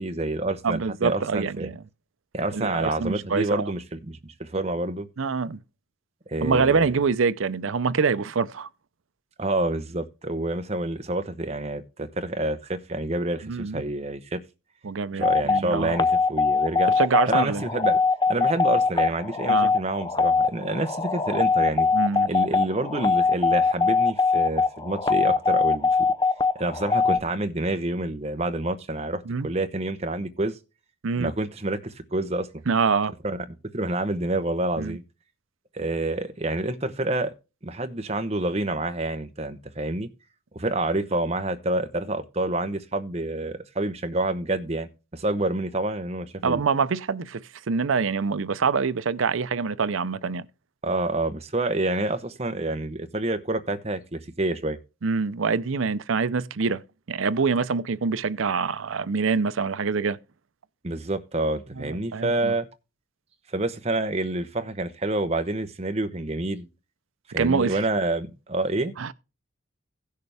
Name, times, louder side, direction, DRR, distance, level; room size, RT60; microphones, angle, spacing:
voice 1, 0.0-1.7 2.3-5.1 6.3-6.9 9.4-14.4 15.1-16.9 17.3-18.0 18.3-21.9 22.2-25.9 26.6-30.6 31.2-32.6 33.2-33.4 33.7-35.0 35.7-37.3 37.6-40.1 40.5-46.6 50.8-54.8 60.8-62.7 63.5-66.7 67.3-68.9, right 2 dB, 30° right, 0.8 m, -28 dB
voice 2, 0.6-1.8 2.5-3.7 5.2-5.6 6.4-8.7 13.4-13.8 14.8-15.9 17.0-17.6 19.5-19.7 21.9-22.3 29.3-29.5 31.0-31.3 32.7-33.1 34.8-35.0 46.4-50.4 55.0-56.8 57.1-60.2 61.8-62.5 67.4-67.8 69.0-69.1, right 5 dB, 80° right, 0.6 m, -25 dB
sound 1, 15.2-27.2, left 4 dB, 20° left, 0.4 m, -22 dB
16.5 x 6.6 x 3.4 m
head